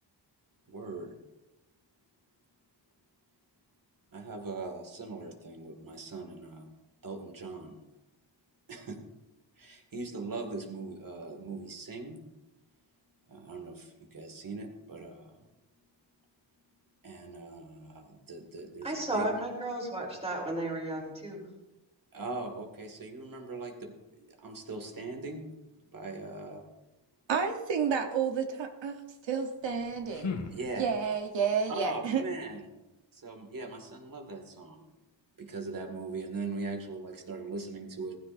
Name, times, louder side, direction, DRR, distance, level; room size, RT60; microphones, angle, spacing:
voice 1, 0.7-1.2 4.1-6.7 7.0-7.8 8.7-9.0 9.6-12.2 13.3-15.5 17.0-19.3 22.1-25.5 25.9-26.6 30.5-31.0 31.7-32.8 33.1-34.9 35.4-38.2, right 3 dB, 50° right, 3 dB, 2.1 m, -40 dB
voice 2, 18.8-21.5, right 1 dB, 15° right, -1 dB, 3.6 m, -33 dB
voice 3, 27.3-29.0 29.3-30.3 30.8-32.2, right 6 dB, 80° right, 4 dB, 1.1 m, -30 dB
sound 1, 29.6-31.3, left 4 dB, 75° left, 1.6 m, -40 dB
16.0 x 15.0 x 2.6 m, 1.0 s
wide cardioid pair, 140°, 44 cm